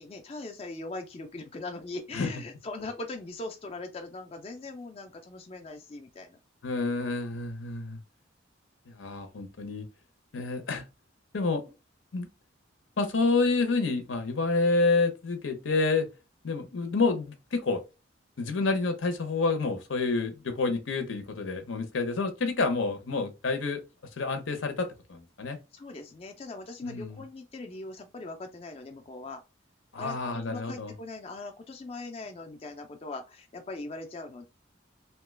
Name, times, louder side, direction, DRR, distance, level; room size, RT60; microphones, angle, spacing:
voice 1, 0.0-6.4 25.7-29.4 30.0-34.5, left 2 dB, 30° left, 0.4 m, -40 dB
voice 2, 6.6-8.0 8.9-9.9 10.3-10.9 11.3-11.6 12.1-12.3 13.0-16.1 16.4-17.8 18.4-23.8 24.2-25.6 26.8-27.2 29.9-30.9, left 3 dB, 85° left, 0.7 m, -28 dB
2.9 x 2.2 x 3.2 m
head